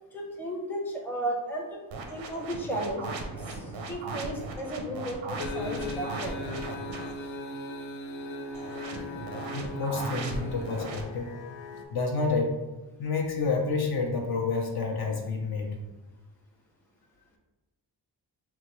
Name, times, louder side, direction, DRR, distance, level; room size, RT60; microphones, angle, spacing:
voice 1, 0.1-1.8 2.1-3.1 3.4-6.5, right 1 dB, 5° left, -1 dB, 0.6 m, -34 dB
sound 1, 1.9-7.1 8.5-11.0, right 3 dB, 90° right, 0.7 m, -38 dB
sound 2, 5.4-11.9, left 2 dB, 90° left, 0.5 m, -38 dB
voice 2, 9.5-11.3 11.9-12.6 13.0-15.7, left 4 dB, 55° left, 0 dB, 0.8 m, -29 dB
3.8 x 2.3 x 3.0 m, 1.2 s
cardioid pair, 85°, 44 cm